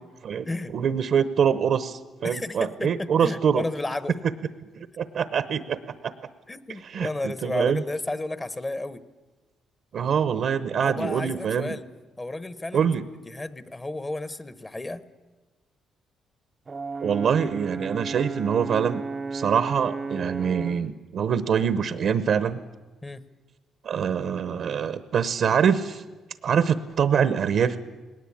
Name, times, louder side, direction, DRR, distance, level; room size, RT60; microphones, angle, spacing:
voice 1, 0.7-3.6 4.8-5.8 6.0-6.1 6.8-7.8 9.9-11.8 12.7-13.0 17.0-19.0 19.3-22.6 23.8-26.0 26.4-27.8, right 7 dB, 65° right, 13 dB, 0.9 m, -24 dB
voice 2, 2.2-4.2 6.5-9.0 10.8-11.8 12.2-12.9 13.2-15.0 23.0-23.2, left 2 dB, 20° left, 14 dB, 1.1 m, -32 dB
Brass instrument, 16.7-20.9, right 4 dB, 35° right, 0.6 m, -33 dB
19.5 x 18.5 x 8.6 m, 1.2 s
cardioid pair, 90°, 0 cm